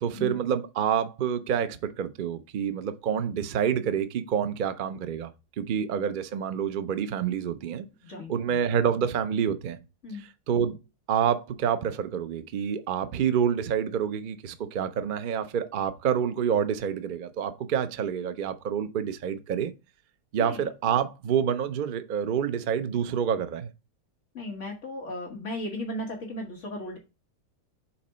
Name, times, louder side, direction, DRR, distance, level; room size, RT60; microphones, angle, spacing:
voice 1, 0.0-5.3 5.6-7.9 8.3-9.8 10.1-10.8 11.1-19.7 20.3-23.7, right 8 dB, 80° right, 0.4 m, -28 dB
voice 2, 8.0-8.6 10.0-10.2 20.4-20.7 24.3-27.0, left 1 dB, 50° left, 1.5 m, -36 dB
5.7 x 4.1 x 5.4 m
omnidirectional pair, 1.7 m